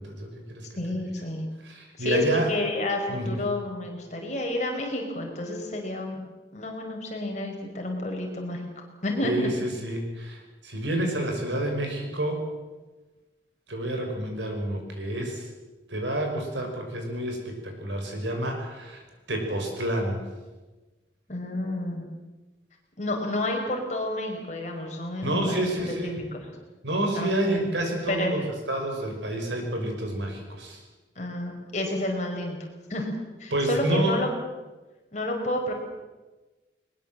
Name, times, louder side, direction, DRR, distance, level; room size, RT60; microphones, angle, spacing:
voice 1, 0.0-0.7 1.6-2.5 3.1-3.4 9.2-12.4 13.7-15.5 15.9-20.3 25.2-26.2 26.8-28.4 28.7-30.8 33.5-34.2, right 1 dB, 80° right, 3 dB, 5.9 m, -29 dB
voice 2, 0.7-1.5 2.0-2.2 2.5-6.2 6.5-9.5 21.3-22.0 23.0-25.7 26.0-26.4 27.1-27.7 28.1-28.4 31.1-32.6 32.9-33.1 33.4-34.3 35.1-35.7, left 1 dB, 40° left, 1 dB, 5.1 m, -30 dB
21.5 x 21.0 x 7.8 m, 1.2 s
head